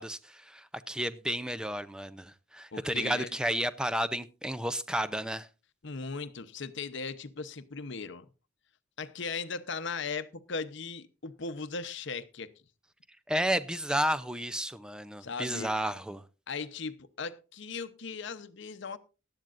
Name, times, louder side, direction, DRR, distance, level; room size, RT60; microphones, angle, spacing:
voice 1, 0.0-5.5 13.3-16.2, right 1 dB, 5° right, 0.5 m, -32 dB
voice 2, 2.7-3.5 5.8-8.3 9.0-12.5 15.2-15.7 16.5-19.0, left 4 dB, 60° left, 0.8 m, -38 dB
18.0 x 12.0 x 2.5 m
head